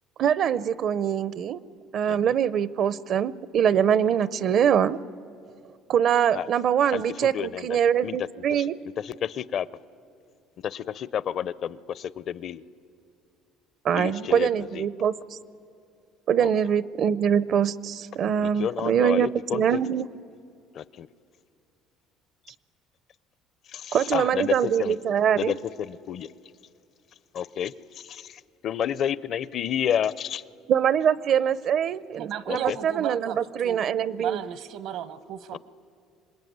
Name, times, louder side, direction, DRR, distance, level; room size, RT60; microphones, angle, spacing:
voice 1, 0.2-1.6 1.9-5.0 5.9-8.7 13.8-15.4 16.3-20.1 23.9-25.6 30.7-34.4, right 8 dB, 50° right, 18 dB, 0.6 m, -23 dB
voice 2, 6.9-8.2 8.5-8.6 9.0-9.7 10.6-12.6 13.9-14.8 16.4-16.5 18.4-19.8 20.7-21.1 23.7-25.0 25.3-26.3 27.3-27.7 28.0-30.4 32.5-32.8 35.5-35.6, left 9 dB, 45° left, 18 dB, 0.5 m, -30 dB
voice 3, 32.2-33.8 34.2-35.6, right 10 dB, 70° right, 13 dB, 1.1 m, -34 dB
26.0 x 21.0 x 9.4 m, 2.5 s
cardioid pair, 130°, 0 cm